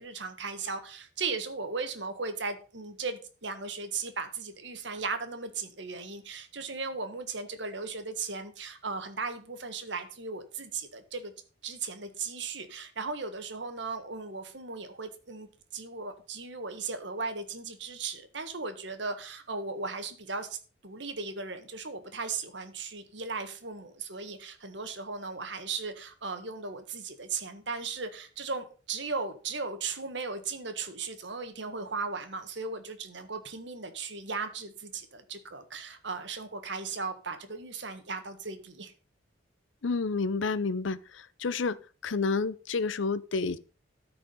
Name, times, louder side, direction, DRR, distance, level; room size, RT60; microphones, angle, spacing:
voice 1, 0.0-11.3 11.6-20.6 20.8-38.9, right 4 dB, 65° right, 1.5 m, -37 dB
voice 2, 39.8-41.8 42.0-43.6, left 4 dB, 75° left, 0.6 m, -30 dB
13.5 x 4.9 x 5.5 m
head